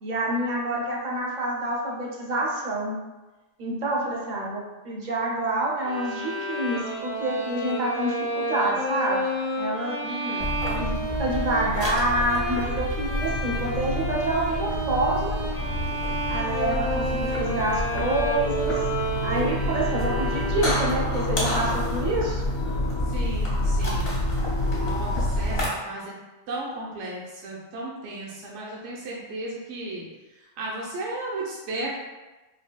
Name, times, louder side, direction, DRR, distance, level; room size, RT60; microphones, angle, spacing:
voice 1, 0.0-3.0 3.6-9.3 9.6-10.0 10.6-15.4 16.3-18.8 19.2-22.4, right 1 dB, 50° right, -4 dB, 0.6 m, -27 dB
sound 1, 5.8-21.0, equal, 25° left, 0.4 m, -31 dB
voice 2, 10.0-10.5 23.1-24.4 24.8-26.1 26.5-30.1 30.3-31.9, right 2 dB, 75° right, -4 dB, 0.9 m, -35 dB
sound 2, 10.4-25.7, left 1 dB, 55° left, 0.9 m, -28 dB
3.3 x 2.6 x 2.2 m, 1.1 s
omnidirectional pair, 1.3 m